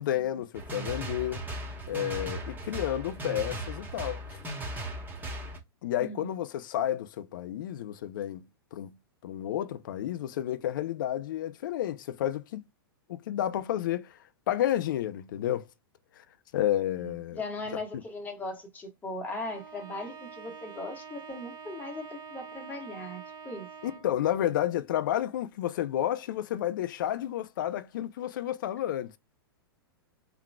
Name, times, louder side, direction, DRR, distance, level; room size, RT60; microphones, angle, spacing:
voice 1, 0.0-1.4 1.9-4.2 5.8-9.0 9.2-12.6 13.1-14.2 14.5-15.7 16.2-16.3 16.5-17.4 17.7-17.8 23.8-29.2, left 12 dB, 55° left, 0.6 m, -31 dB
sound 1, 0.5-5.6, right 1 dB, 15° right, 1.7 m, -37 dB
voice 2, 17.3-23.7, left 2 dB, 15° left, 1.6 m, -38 dB
Bowed string instrument, 19.4-24.2, right 6 dB, 60° right, 1.6 m, -46 dB
4.4 x 3.8 x 2.3 m
figure-of-eight pair, 100°, 13 cm